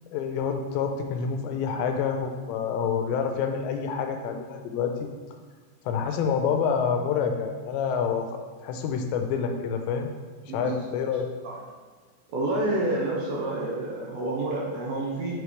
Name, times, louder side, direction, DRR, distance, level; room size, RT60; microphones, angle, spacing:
voice 1, 0.1-5.1 5.9-10.1 10.5-11.3, left 6 dB, 85° left, 5 dB, 2.9 m, -27 dB
voice 2, 10.5-10.8 12.3-15.4, right 2 dB, 70° right, -4 dB, 2.4 m, -28 dB
9.0 x 4.9 x 3.2 m, 1.4 s
omnidirectional pair, 5.0 m